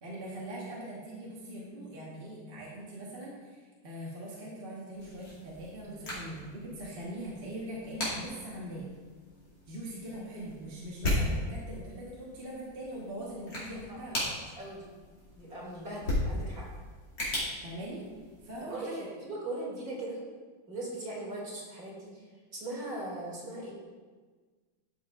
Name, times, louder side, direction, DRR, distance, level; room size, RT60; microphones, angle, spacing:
voice 1, 0.0-8.9 9.7-14.3 17.6-18.0 18.4-19.1, right 1 dB, 30° right, -6 dB, 1.3 m, -41 dB
sound 1, 4.9-18.6, left 1 dB, 65° left, 3.2 m, -37 dB
voice 2, 15.3-16.6 18.7-20.2 20.7-22.2 22.5-23.7, right 1 dB, 50° right, -5 dB, 3.0 m, -39 dB
12.0 x 6.9 x 2.5 m, 1.4 s
omnidirectional pair, 2.1 m